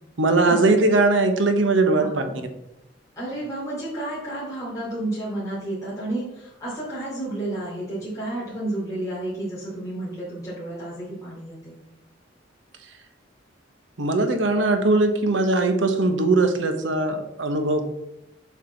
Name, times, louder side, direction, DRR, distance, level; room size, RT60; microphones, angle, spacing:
voice 1, 0.2-2.2 14.0-17.8, right 2 dB, 90° right, 6 dB, 1.1 m, -20 dB
voice 2, 2.0-2.3 3.2-11.7, right 1 dB, 20° left, -9 dB, 3.0 m, -31 dB
7.4 x 5.5 x 4.0 m, 0.88 s
head